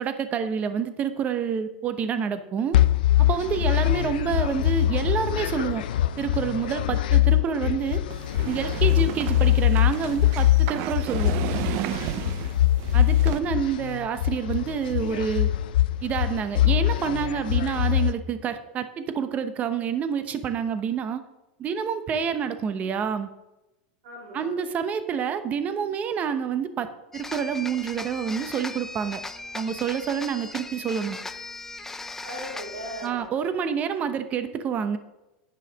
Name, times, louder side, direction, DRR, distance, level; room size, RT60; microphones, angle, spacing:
voice 1, 0.0-2.8 3.2-5.8 6.2-8.0 8.4-11.4 12.9-15.5 16.0-21.2 21.6-23.3 24.3-26.9 27.1-29.2 29.5-31.2 33.0-35.0, right 7 dB, 30° right, 10 dB, 0.9 m, -28 dB
sound 1, 2.7-18.1, left 13 dB, 85° left, 0.5 m, -23 dB
sound 2, 8.1-13.4, right 13 dB, 55° right, 0.6 m, -33 dB
voice 2, 12.5-12.9 24.0-24.6 32.2-33.3, equal, 80° right, -5 dB, 3.6 m, -39 dB
sound 3, 27.1-33.2, left 2 dB, 10° left, 0.5 m, -38 dB
10.0 x 5.6 x 6.3 m, 0.98 s
supercardioid pair, 130°, 5 cm